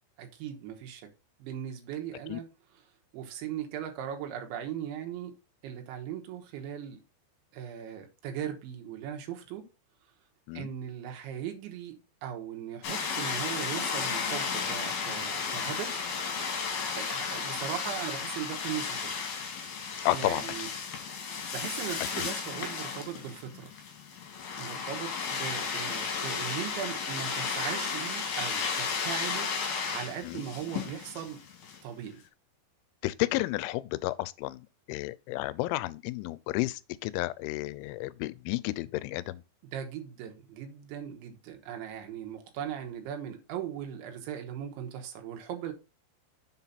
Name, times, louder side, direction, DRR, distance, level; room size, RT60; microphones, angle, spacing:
voice 1, 0.2-1.1 1.4-2.5 3.1-5.3 5.6-7.0 7.5-9.7 10.6-12.0 12.2-16.1 17.0-19.2 20.1-20.7 21.5-23.7 24.6-29.5 29.9-31.4 31.8-32.2 39.7-45.7, right 9 dB, 80° right, 3.5 m, -38 dB
sound 1, 12.8-31.8, left 5 dB, 60° left, 3.5 m, -34 dB
voice 2, 20.1-20.7 22.2-22.3 30.2-30.4 33.0-39.4, left 18 dB, 90° left, 3.0 m, -32 dB
7.3 x 5.7 x 4.1 m
omnidirectional pair, 5.4 m